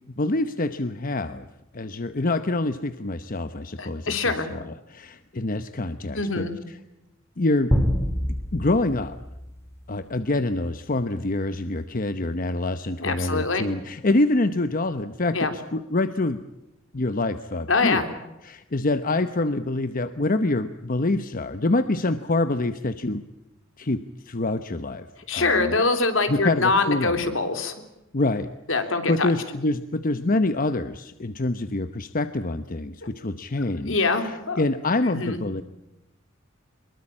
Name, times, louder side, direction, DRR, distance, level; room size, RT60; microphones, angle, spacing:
voice 1, 0.2-1.5 1.7-6.8 7.4-7.7 8.5-9.2 9.9-16.4 16.9-18.1 18.4-23.2 23.8-25.1 25.3-25.7 26.3-27.1 28.1-28.5 29.1-35.6, left 2 dB, 45° left, 11 dB, 0.9 m, -26 dB
voice 2, 3.8-4.5 6.2-6.5 13.0-13.6 15.3-15.5 17.7-18.1 25.3-27.7 28.7-29.3 33.9-34.6 35.0-35.4, left 3 dB, 70° left, 7 dB, 3.4 m, -24 dB
sound 1, 7.7-10.5, equal, 15° left, 3.2 m, -27 dB
24.0 x 22.0 x 8.6 m, 0.92 s
head